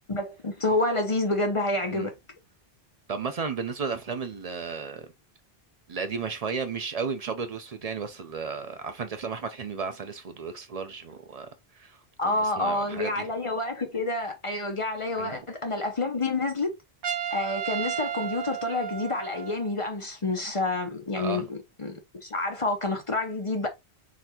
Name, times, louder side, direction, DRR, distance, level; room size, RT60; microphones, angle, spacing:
voice 1, 0.1-2.1 12.2-16.8 17.3-23.7, left 2 dB, 35° left, 0.6 m, -28 dB
voice 2, 3.1-5.1 5.9-11.5 11.8-12.0 12.2-13.3 15.2-15.4 21.2-21.5, right 5 dB, 50° right, 0.5 m, -34 dB
Trumpet, 17.0-19.7, right 9 dB, 80° right, 1.0 m, -33 dB
4.0 x 3.3 x 2.9 m
omnidirectional pair, 1.2 m